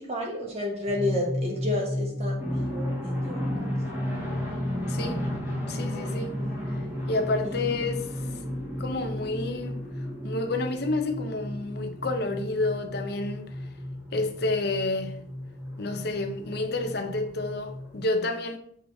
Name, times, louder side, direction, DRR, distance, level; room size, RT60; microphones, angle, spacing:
voice 1, 0.0-3.7 6.6-6.9 7.4-7.6, left 1 dB, 35° right, 1.4 m, -32 dB
sound 1, 0.9-18.0, left 1 dB, 85° left, 1.4 m, -34 dB
sound 2, 2.4-18.0, equal, 10° right, 1.7 m, -39 dB
voice 2, 4.9-5.2 5.7-6.4 7.1-8.1 8.8-9.9 10.2-13.5 14.1-15.2 15.8-18.6, left 2 dB, 55° left, 0.7 m, -29 dB
7.1 x 4.8 x 2.7 m
head